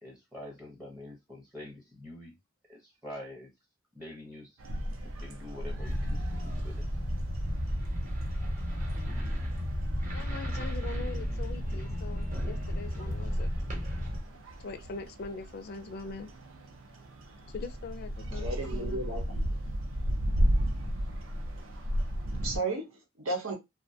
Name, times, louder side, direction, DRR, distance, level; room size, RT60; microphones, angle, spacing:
voice 1, 0.0-2.3 2.7-3.5 3.9-4.6 5.0-6.8, left 1 dB, 10° right, 0.6 m, -46 dB
Em frente à Igreja do Rosarinho, 4.6-22.6, equal, 70° right, 0.5 m, -35 dB
sound 1, 5.8-14.2, equal, 40° right, 0.8 m, -33 dB
voice 2, 10.1-13.5 14.6-16.3 17.5-19.0, left 4 dB, 50° left, 0.4 m, -42 dB
voice 3, 18.3-19.4 22.3-23.5, right 2 dB, 85° right, 0.9 m, -34 dB
2.5 x 2.1 x 2.6 m
head